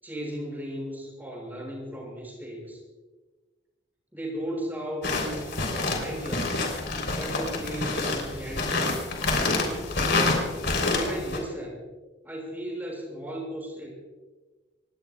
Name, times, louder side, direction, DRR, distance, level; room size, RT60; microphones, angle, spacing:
voice 1, 0.0-2.8 4.1-5.6 5.9-6.7 7.1-10.0 10.8-11.8 12.2-14.0, equal, 10° right, -2 dB, 6.0 m, -36 dB
sound 1, 5.0-11.4, left 3 dB, 60° left, 3.7 m, -27 dB
28.0 x 19.0 x 2.4 m, 1.3 s
head